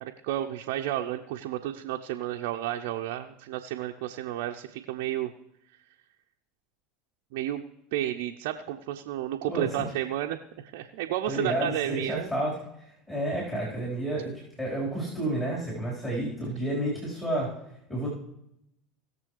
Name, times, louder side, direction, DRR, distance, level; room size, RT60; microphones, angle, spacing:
voice 1, 0.0-5.3 7.3-7.6 7.9-10.4 10.6-12.3, right 12 dB, 65° right, 3 dB, 0.6 m, -32 dB
voice 2, 9.5-9.9 11.3-12.5 13.1-14.3 14.6-17.5 17.9-18.1, right 1 dB, 15° left, -6 dB, 4.3 m, -30 dB
19.5 x 6.9 x 3.3 m, 0.79 s
hypercardioid pair, 75°, 0 cm